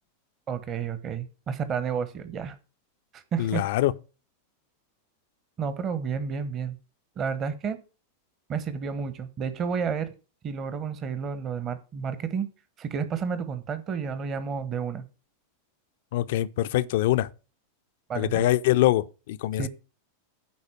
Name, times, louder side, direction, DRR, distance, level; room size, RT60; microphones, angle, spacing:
voice 1, 0.5-2.5 3.1-3.6 5.6-6.8 7.2-7.8 8.5-10.1 10.4-12.5 12.8-15.0 18.1-18.4 19.6-19.7, right 6 dB, 30° right, 1.0 m, -31 dB
voice 2, 3.4-4.0 16.1-17.3 18.1-19.7, left 15 dB, 55° left, 0.5 m, -24 dB
9.9 x 4.1 x 7.6 m
figure-of-eight pair, 90°, 0 cm